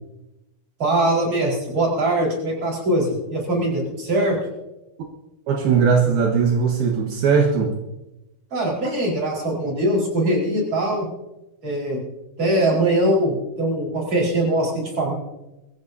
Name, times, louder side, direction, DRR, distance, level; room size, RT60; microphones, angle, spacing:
voice 1, 0.8-4.4 8.5-11.1 11.6-12.0 12.4-15.1, right 1 dB, 30° right, -2 dB, 5.3 m, -22 dB
voice 2, 5.5-7.7, right 6 dB, 75° right, 1 dB, 3.2 m, -19 dB
22.5 x 15.0 x 2.8 m, 0.96 s
omnidirectional pair, 4.5 m